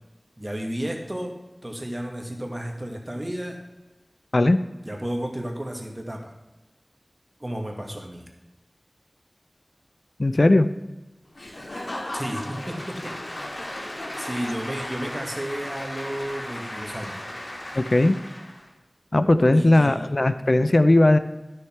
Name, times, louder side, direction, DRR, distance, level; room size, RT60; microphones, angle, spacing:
voice 1, 0.4-1.4 1.6-3.6 4.8-6.3 7.4-8.2 12.1-13.5 14.2-17.2 19.5-20.2, right 1 dB, 25° right, 1 dB, 1.9 m, -32 dB
voice 2, 10.2-10.7 17.7-18.2 19.1-21.2, left 1 dB, 60° left, 11 dB, 0.5 m, -18 dB
Applause / Crowd, 11.3-18.7, left 1 dB, 75° left, 2.0 m, -35 dB
12.5 x 6.5 x 4.5 m, 1.1 s
wide cardioid pair, 50°, 0 cm